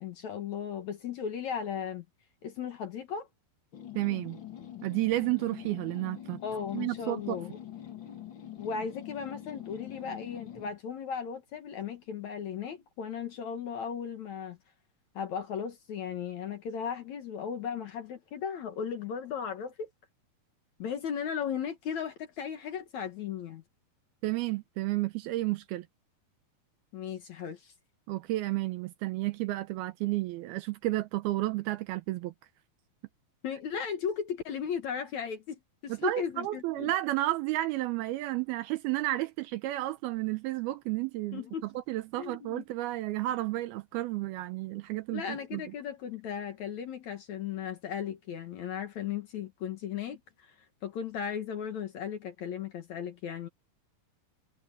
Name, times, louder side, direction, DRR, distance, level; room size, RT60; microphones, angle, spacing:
voice 1, 0.0-2.0 2.4-3.3 6.4-7.6 8.6-14.6 15.2-19.9 20.8-23.6 26.9-27.7 33.4-36.9 41.3-41.7 42.2-42.6 45.1-50.6 50.8-53.5, left 7 dB, 60° left, 2.2 m, -36 dB
sound 1, 3.7-10.8, left 11 dB, 45° left, 1.7 m, -44 dB
voice 2, 4.0-4.4 4.8-6.4 6.7-7.4 24.2-25.9 28.1-32.3 35.9-41.4 41.8-45.6, right 17 dB, 80° right, 2.6 m, -32 dB
omnidirectional pair, 4.5 m